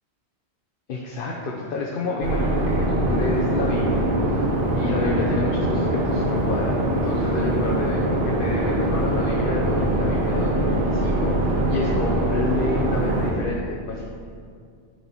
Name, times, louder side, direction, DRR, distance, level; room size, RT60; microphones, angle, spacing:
voice 1, 0.9-4.1 4.8-14.1, left 2 dB, 55° left, -2 dB, 0.8 m, -29 dB
sound 1, 2.2-13.3, right 1 dB, 55° right, 1.1 m, -23 dB
10.5 x 4.2 x 4.4 m, 2.2 s
omnidirectional pair, 1.1 m